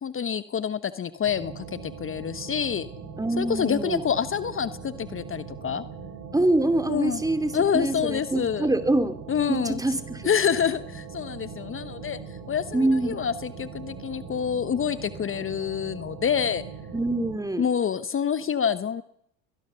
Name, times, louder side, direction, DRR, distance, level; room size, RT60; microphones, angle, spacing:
voice 1, 0.0-2.9 3.4-5.8 6.9-7.2 7.5-8.7 9.3-9.8 10.2-16.6 17.6-19.0, left 8 dB, 30° left, 14 dB, 1.2 m, -27 dB
sound 1, 1.2-17.4, right 5 dB, 60° right, 6.3 m, -40 dB
voice 2, 3.2-4.0 6.3-9.1 9.5-10.3 12.7-13.2 16.9-17.7, right 2 dB, 10° right, 10 dB, 2.6 m, -25 dB
22.0 x 19.0 x 6.9 m, 0.69 s
hypercardioid pair, 75°, 39 cm